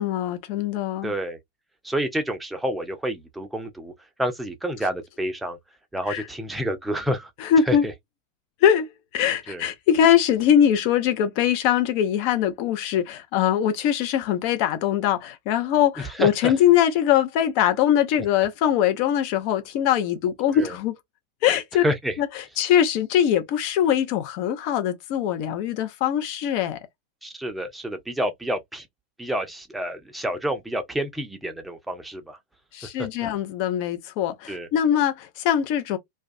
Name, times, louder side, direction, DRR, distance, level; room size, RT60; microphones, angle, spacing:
voice 1, 0.0-1.1 6.1-6.2 7.4-7.8 8.6-8.9 9.1-20.9 21.4-21.8 22.2-22.3 22.6-26.8 32.7-36.0, left 10 dB, 45° left, 0.6 m, -22 dB
voice 2, 1.0-1.4 1.8-3.9 4.2-5.6 5.9-7.3 7.7-7.9 9.5-9.6 16.0-16.5 20.5-20.7 21.8-22.1 27.2-28.9 29.2-32.4 34.5-34.7, right 1 dB, 5° right, 0.6 m, -28 dB
2.2 x 2.2 x 2.6 m
figure-of-eight pair, 90°, 0 cm